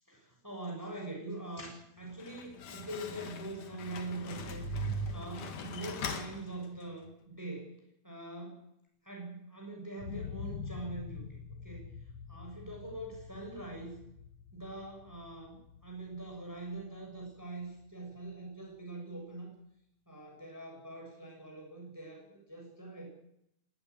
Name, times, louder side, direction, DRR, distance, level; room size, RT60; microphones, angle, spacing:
voice 1, 0.1-4.6 5.1-7.7 8.0-8.6 9.0-11.2 11.6-11.9 12.3-14.0 14.5-15.6 15.8-19.5 20.1-23.1, right 2 dB, 5° right, 0 dB, 6.7 m, -43 dB
Slam, 2.0-7.1, left 6 dB, 80° left, 3.5 m, -44 dB
sound 1, 3.7-6.1, right 4 dB, 50° right, 1.6 m, -39 dB
sound 2, 10.0-17.9 18.3-18.4, left 6 dB, 60° left, 2.0 m, -46 dB
19.0 x 17.5 x 9.4 m, 0.78 s
omnidirectional pair, 3.5 m